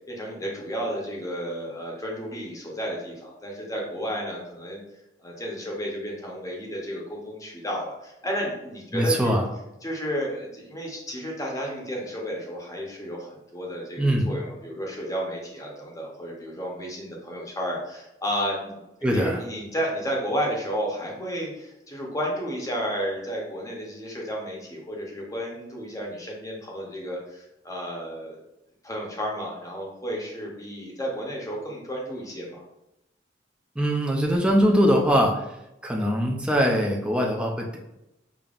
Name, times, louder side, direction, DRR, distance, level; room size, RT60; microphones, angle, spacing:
voice 1, 0.1-4.8 5.2-9.3 9.8-18.8 19.1-28.4 28.8-32.6, equal, 20° left, -2 dB, 0.8 m, -32 dB
voice 2, 8.9-9.5 14.0-14.3 19.0-19.4 33.8-35.4 35.8-37.8, equal, 5° right, -1 dB, 0.5 m, -22 dB
5.1 x 2.9 x 2.4 m, 0.89 s
head